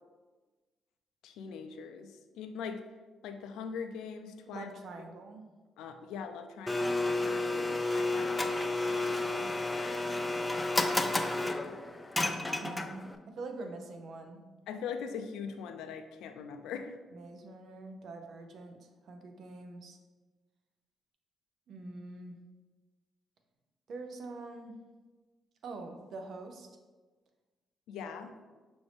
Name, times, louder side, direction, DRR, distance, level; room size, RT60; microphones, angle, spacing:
voice 1, 1.2-2.8 3.2-4.7 5.8-10.0 14.7-17.0 27.9-28.3, left 6 dB, 90° left, 7 dB, 0.4 m, -42 dB
voice 2, 4.5-5.4 12.5-14.4 17.1-20.0 21.7-22.4 23.9-24.8 25.6-26.7, right 3 dB, 65° right, 5 dB, 0.6 m, -44 dB
Domestic sounds home sounds, 6.7-13.2, left 2 dB, 15° left, 0.3 m, -31 dB
6.0 x 2.6 x 3.3 m, 1.3 s
cardioid pair, 90°, 0 cm